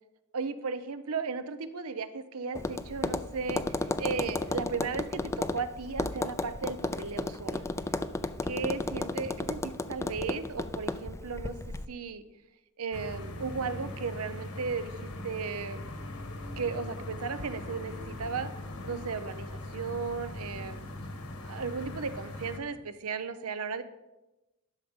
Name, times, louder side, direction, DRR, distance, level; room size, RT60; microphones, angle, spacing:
voice 1, 0.3-7.6 8.4-12.2 12.8-15.9 16.6-18.5 18.8-20.8 21.4-23.8, right 5 dB, 75° right, 12 dB, 0.7 m, -35 dB
Tap, 2.5-11.9, left 2 dB, 15° left, 0.3 m, -34 dB
sound 1, 12.9-22.6, left 1 dB, 70° left, 1.3 m, -40 dB
11.5 x 6.4 x 5.2 m, 1.0 s
head